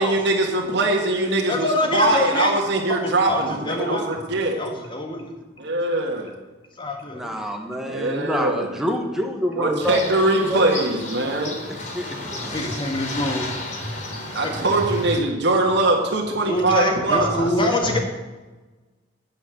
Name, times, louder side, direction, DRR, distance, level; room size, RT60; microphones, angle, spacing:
voice 1, 0.0-4.6 5.6-6.3 7.2-7.4 7.8-8.8 9.6-11.6 14.3-17.9, right 2 dB, 65° right, 0 dB, 1.7 m, -22 dB
voice 2, 1.5-2.5 3.0-4.2 4.6-5.3 6.8-7.2 12.2-13.9 14.4-14.6 16.4-18.0, left 1 dB, 25° left, 3 dB, 1.8 m, -25 dB
voice 3, 7.1-10.8 11.9-12.2, equal, ahead, 2 dB, 1.4 m, -27 dB
sound 1, 9.8-15.2, left 2 dB, 45° left, 3.8 m, -33 dB
9.4 x 8.8 x 7.5 m, 1.2 s
head